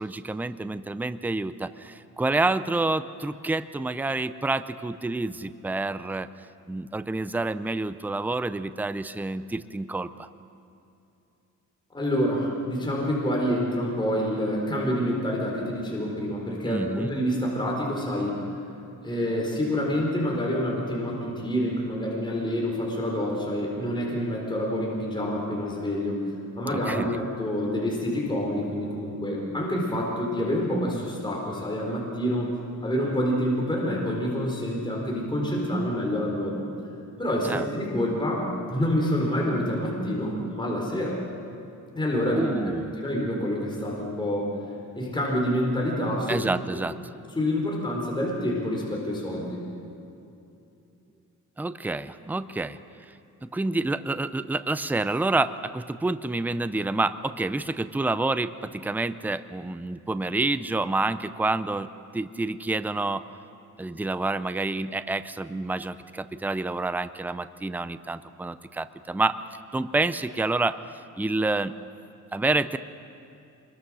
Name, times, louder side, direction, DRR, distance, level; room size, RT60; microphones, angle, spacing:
voice 1, 0.0-6.3 6.7-10.3 16.6-17.1 26.7-27.1 37.4-37.6 42.3-42.9 46.3-46.9 51.6-52.8 53.4-61.9 62.1-63.2 63.8-69.4 69.7-70.8 71.2-71.7 72.3-72.8, right 2 dB, 5° right, 13 dB, 0.5 m, -28 dB
voice 2, 11.9-18.4 19.0-26.3 26.6-32.5 32.8-36.6 37.2-41.2 42.0-42.5 43.0-44.5 44.9-46.4 47.3-49.6, equal, 15° left, -3 dB, 4.3 m, -27 dB
25.0 x 22.0 x 6.3 m, 2.7 s
cardioid pair, 130°, 31 cm